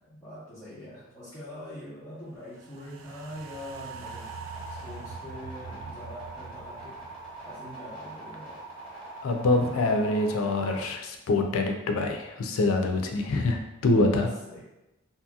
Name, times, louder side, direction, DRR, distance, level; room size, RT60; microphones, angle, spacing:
voice 1, 0.0-7.1 7.4-8.6 13.8-14.6, left 1 dB, 10° left, -14 dB, 0.9 m, -44 dB
sound 1, 2.5-8.9 9.2-9.3, right 4 dB, 75° right, 0.3 m, -45 dB
sound 2, 4.0-10.8, right 2 dB, 10° right, 1.2 m, -43 dB
voice 2, 9.2-14.3, left 2 dB, 90° left, 4 dB, 0.4 m, -25 dB
2.8 x 2.7 x 2.3 m, 0.96 s
head